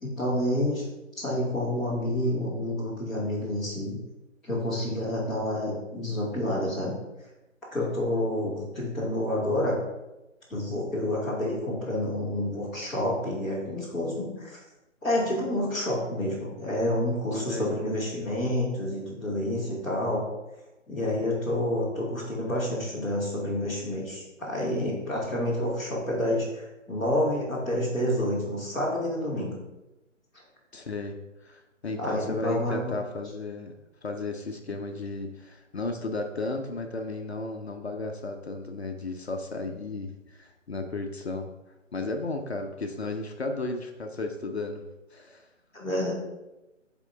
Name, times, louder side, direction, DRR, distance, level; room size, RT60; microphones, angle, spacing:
voice 1, 0.0-0.8 1.2-4.0 4.4-6.9 7.7-9.8 10.5-14.6 15.0-20.2 20.9-29.6 32.0-32.9 45.7-46.1, left 1 dB, ahead, -13 dB, 0.9 m, -29 dB
voice 2, 17.3-17.7 30.7-33.7 34.0-41.5 41.9-44.8 45.1-45.5, left 2 dB, 55° left, 4 dB, 0.7 m, -34 dB
8.1 x 3.7 x 3.5 m, 1.0 s
figure-of-eight pair, 145°, 39 cm